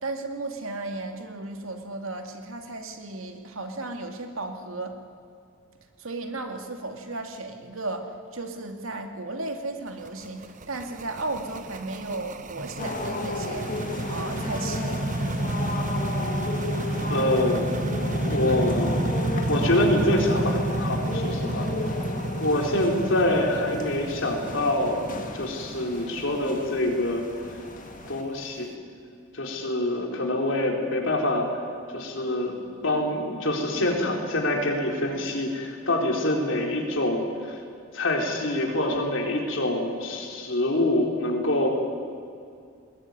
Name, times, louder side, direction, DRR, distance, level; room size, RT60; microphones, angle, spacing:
voice 1, 0.0-5.0 6.0-13.7 14.1-15.1, right 2 dB, 80° right, 5 dB, 2.4 m, -35 dB
sound 1, 9.9-28.6, right 1 dB, 35° right, 1.0 m, -31 dB
sound 2, 12.8-28.2, left 2 dB, 40° left, 1.9 m, -34 dB
voice 2, 17.1-17.8 18.3-19.0 19.5-21.7 22.4-27.2 28.1-28.7 29.3-31.5 31.9-32.6 32.8-37.6 37.9-41.7, left 1 dB, 65° left, 1 dB, 4.1 m, -25 dB
21.0 x 20.0 x 9.8 m, 2.4 s
head